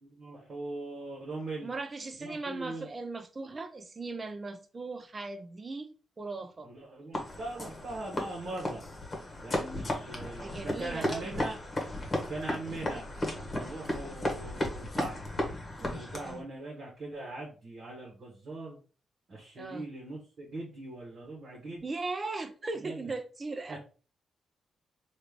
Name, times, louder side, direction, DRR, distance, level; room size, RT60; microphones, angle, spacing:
voice 1, 0.0-1.7 2.2-2.9 6.6-8.8 9.4-11.6 12.3-13.1 13.5-15.3 15.8-18.8 19.3-21.8 22.7-23.0 23.7-23.8, right 2 dB, 60° right, 1.2 m, -41 dB
voice 2, 1.6-6.7 10.4-11.4 16.1-16.4 19.6-19.8 21.8-23.8, right 3 dB, 35° right, 0.6 m, -38 dB
sound 1, 7.1-16.4, left 1 dB, 30° left, 1.1 m, -35 dB
3.1 x 2.5 x 3.6 m
cardioid pair, 85°, 0 cm